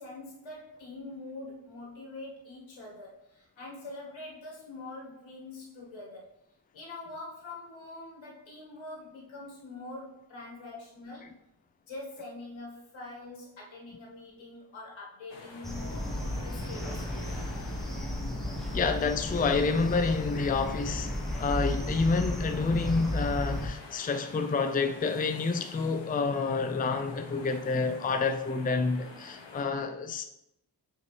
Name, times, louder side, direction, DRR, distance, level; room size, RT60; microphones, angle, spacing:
voice 1, 0.0-6.3 6.7-11.4 11.9-16.0 16.4-17.4, left 2 dB, 90° left, 1.9 m, -44 dB
sound 1, 15.3-29.6, left 3 dB, 70° left, 1.1 m, -48 dB
sound 2, 15.6-23.7, left 1 dB, ahead, 1.1 m, -34 dB
voice 2, 18.7-21.1 21.4-30.2, left 4 dB, 20° left, 0.4 m, -28 dB
6.9 x 4.3 x 3.2 m
wide cardioid pair, 90°, 45 cm